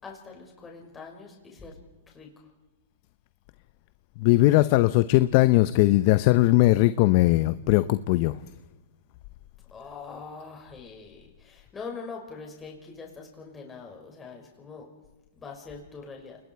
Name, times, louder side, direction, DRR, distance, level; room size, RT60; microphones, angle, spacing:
voice 1, 0.0-1.8 2.1-2.3 9.7-14.9 15.3-16.4, left 4 dB, 15° left, 0 dB, 5.5 m, -43 dB
voice 2, 4.2-8.3, left 17 dB, 50° left, 14 dB, 0.7 m, -20 dB
29.0 x 20.5 x 4.7 m, 1.1 s
hypercardioid pair, 130°, 0 cm